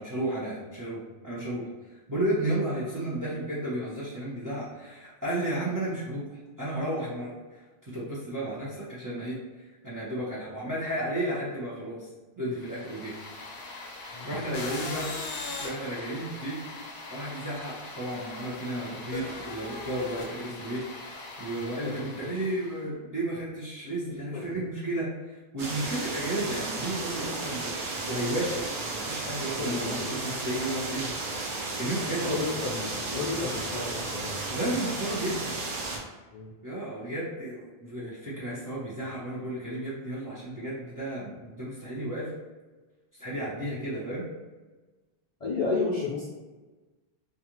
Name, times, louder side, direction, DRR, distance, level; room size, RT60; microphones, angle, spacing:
voice 1, 0.0-1.7 2.1-6.3 6.6-7.4 7.8-9.4 9.8-12.1 12.4-13.2 14.2-15.1 15.6-16.6 17.1-25.1 25.5-31.1 31.8-32.4 34.5-35.6 36.6-42.3 43.2-44.3, right 1 dB, 25° right, -8 dB, 0.5 m, -33 dB
sound 1, 12.6-22.8, left 3 dB, 75° left, 0.8 m, -40 dB
voice 2, 14.1-14.9 21.8-22.0 24.1-24.6 29.6-30.0 32.2-34.4 36.3-36.5 45.4-46.3, left 4 dB, 50° left, -6 dB, 0.4 m, -32 dB
sound 2, 25.6-36.0, right 3 dB, 75° right, 0.8 m, -34 dB
2.5 x 2.3 x 2.9 m, 1.2 s
omnidirectional pair, 1.1 m